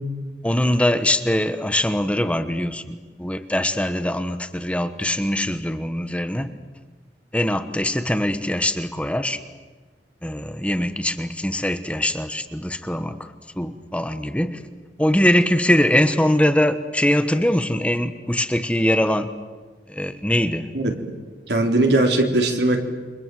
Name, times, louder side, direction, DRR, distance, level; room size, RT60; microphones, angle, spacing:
voice 1, 0.4-6.5 7.3-9.4 10.2-14.6 15.0-19.3 19.9-20.7, left 1 dB, 5° left, 9 dB, 1.2 m, -22 dB
voice 2, 21.5-22.8, right 2 dB, 70° right, 3 dB, 3.8 m, -19 dB
29.0 x 25.5 x 7.8 m, 1.4 s
head